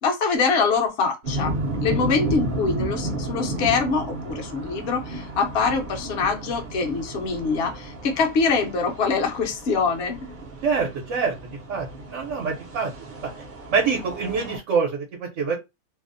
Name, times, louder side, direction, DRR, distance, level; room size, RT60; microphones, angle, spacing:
voice 1, 0.0-1.5 1.8-10.2, left 4 dB, 55° left, 0.8 m, -24 dB
sound 1, 1.2-14.6, right 1 dB, 50° right, 0.6 m, -33 dB
voice 2, 10.6-11.3 11.7-12.9 13.7-15.6, right 5 dB, 70° right, 1.0 m, -25 dB
2.7 x 2.0 x 2.4 m
omnidirectional pair, 1.4 m